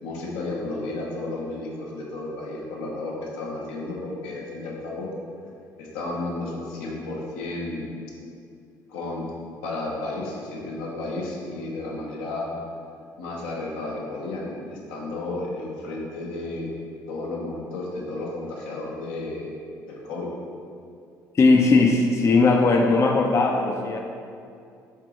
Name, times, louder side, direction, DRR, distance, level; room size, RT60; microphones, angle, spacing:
voice 1, 0.0-5.1 5.8-7.9 8.9-9.3 9.6-12.5 13.2-16.7 17.1-19.5 19.9-20.3, left 2 dB, 70° left, -3 dB, 0.7 m, -32 dB
voice 2, 21.3-24.0, left 3 dB, 30° left, 2 dB, 0.4 m, -18 dB
4.5 x 3.7 x 2.9 m, 2.4 s
hypercardioid pair, 50°, 10 cm